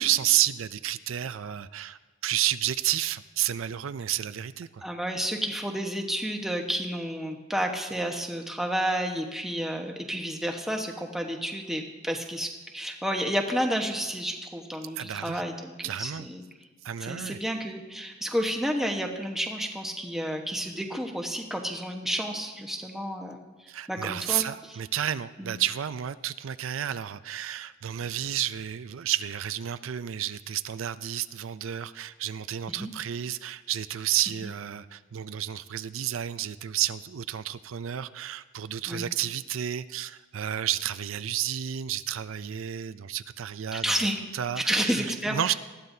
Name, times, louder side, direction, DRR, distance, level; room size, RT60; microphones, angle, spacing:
voice 1, 0.0-4.8 15.0-15.4 15.8-16.3 16.8-17.4 23.7-44.0 44.3-45.5, right 11 dB, 85° right, 14 dB, 0.4 m, -31 dB
voice 2, 4.8-15.7 16.0-16.4 17.0-23.5 23.9-24.4 25.4-25.5 32.8-32.9 38.9-39.0 43.7-44.2 44.6-45.5, equal, ahead, 1 dB, 1.2 m, -30 dB
19.0 x 14.5 x 2.7 m, 1.2 s
head